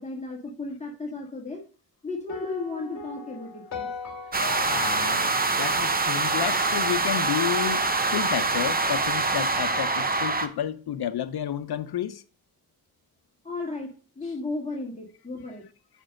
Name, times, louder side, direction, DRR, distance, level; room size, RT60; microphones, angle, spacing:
voice 1, 0.0-1.6 2.0-3.9 13.4-15.6, left 3 dB, 20° left, 1.7 m, -34 dB
sound 1, 2.3-6.6, left 5 dB, 50° left, 1.5 m, -39 dB
sound 2, 4.3-10.5, right 3 dB, 25° right, 0.7 m, -25 dB
voice 2, 4.6-12.2, left 10 dB, 85° left, 0.7 m, -31 dB
6.3 x 5.4 x 6.4 m
wide cardioid pair, 140°, 37 cm